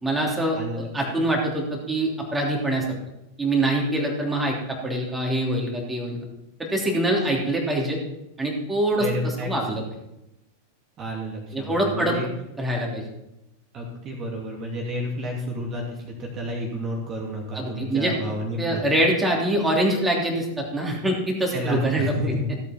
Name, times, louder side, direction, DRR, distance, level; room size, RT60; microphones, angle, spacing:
voice 1, 0.0-3.0 3.4-6.2 6.6-8.0 8.4-9.1 9.4-9.8 11.5-12.1 12.6-13.0 17.5-18.1 18.6-22.1, right 1 dB, 10° right, -2 dB, 3.1 m, -24 dB
voice 2, 0.5-1.1 9.0-9.5 11.0-12.3 13.7-19.0 21.5-22.5, equal, 30° right, -1 dB, 2.8 m, -30 dB
16.0 x 8.6 x 4.4 m, 0.89 s
figure-of-eight pair, 90°, 0 cm